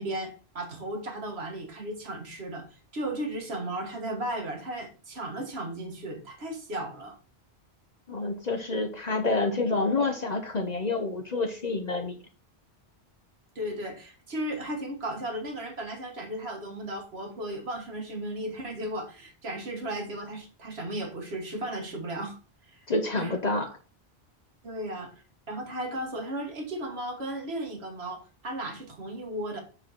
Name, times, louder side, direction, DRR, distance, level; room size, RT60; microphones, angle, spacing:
voice 1, 0.0-2.7 2.9-7.2 13.6-22.4 22.7-22.8 23.2-23.4 24.6-25.1 25.5-29.6, right 1 dB, 75° right, 1.9 m, -35 dB
voice 2, 8.1-12.2 22.9-23.8, left 3 dB, 45° left, 0.8 m, -28 dB
6.9 x 4.9 x 4.4 m
omnidirectional pair, 1.1 m